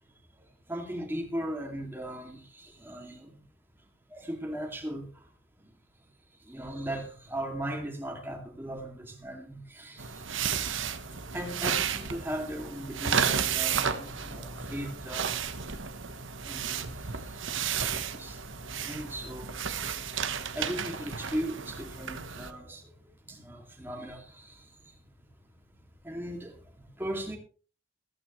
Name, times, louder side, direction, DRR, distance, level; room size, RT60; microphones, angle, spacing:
voice 1, 0.4-3.4 4.1-5.7 6.0-6.1 6.4-10.7 11.0-15.4 16.0-18.5 18.8-25.5 26.0-27.4, right 1 dB, 10° right, 2.5 m, -39 dB
sound 1, 10.0-22.5, right 7 dB, 55° right, 1.2 m, -33 dB
15.0 x 14.5 x 3.2 m
head